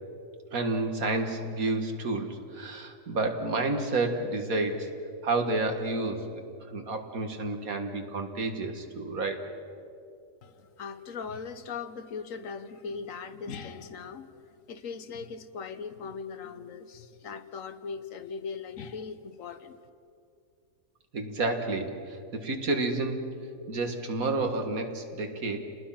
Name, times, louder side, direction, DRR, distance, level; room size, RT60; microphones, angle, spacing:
voice 1, 0.5-4.9 5.2-6.2 6.7-9.4 21.1-23.2 23.7-25.7, right 2 dB, 80° right, 5 dB, 2.2 m, -30 dB
voice 2, 10.4-19.8, left 5 dB, 70° left, 11 dB, 1.4 m, -39 dB
29.0 x 19.5 x 5.8 m, 2.5 s
omnidirectional pair, 1.4 m